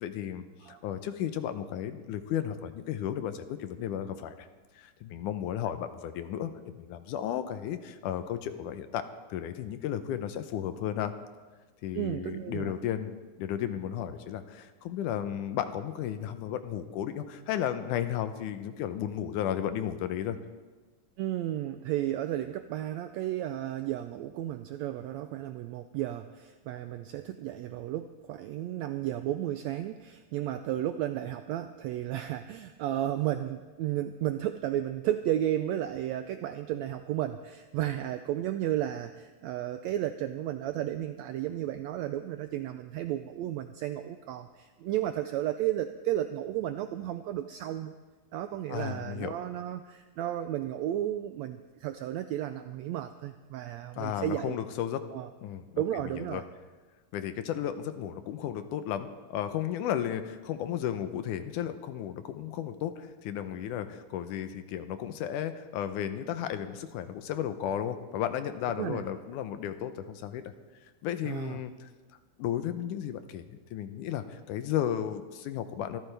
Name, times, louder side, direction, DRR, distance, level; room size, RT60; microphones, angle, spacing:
voice 1, 0.0-4.5 4.8-11.1 11.8-20.4 48.7-49.3 54.0-55.0 55.4-55.8 56.2-56.4 57.1-70.5 71.0-71.9 72.4-76.0, left 10 dB, 80° left, 10 dB, 2.2 m, -34 dB
voice 2, 11.9-12.8 21.2-47.9 48.3-54.6 55.1-55.3 55.8-56.4 68.8-69.1 71.2-71.6, right 12 dB, 85° right, 9 dB, 1.5 m, -33 dB
24.0 x 14.0 x 3.4 m, 1.3 s
omnidirectional pair, 3.7 m